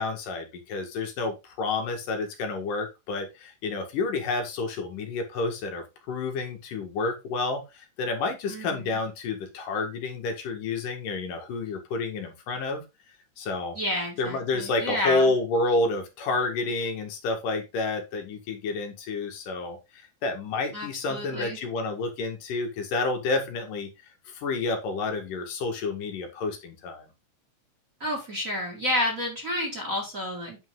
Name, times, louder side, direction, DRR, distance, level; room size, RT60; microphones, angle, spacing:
voice 1, 0.0-12.8 13.4-13.8 14.2-23.9 24.3-27.1, left 3 dB, 80° left, 4 dB, 3.4 m, -29 dB
voice 2, 8.5-9.0 13.7-15.3 20.7-21.6 28.0-30.6, left 1 dB, 30° right, 0 dB, 2.3 m, -30 dB
9.1 x 5.5 x 3.8 m, 0.25 s
omnidirectional pair, 3.7 m